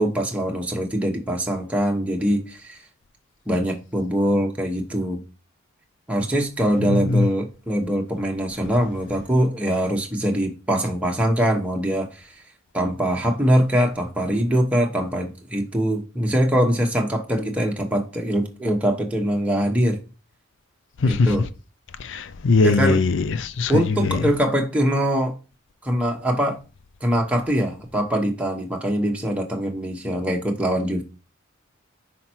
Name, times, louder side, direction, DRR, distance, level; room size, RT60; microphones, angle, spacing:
voice 1, 0.0-2.8 3.5-5.2 6.1-12.4 12.7-20.0 21.0-21.5 22.6-23.0 23.7-25.3 25.8-26.6 27.0-31.0, equal, 5° right, 1.0 m, -23 dB
voice 2, 6.9-7.2 21.0-21.3 22.0-23.8, left 3 dB, 55° left, 0.5 m, -20 dB
5.8 x 4.3 x 4.4 m
head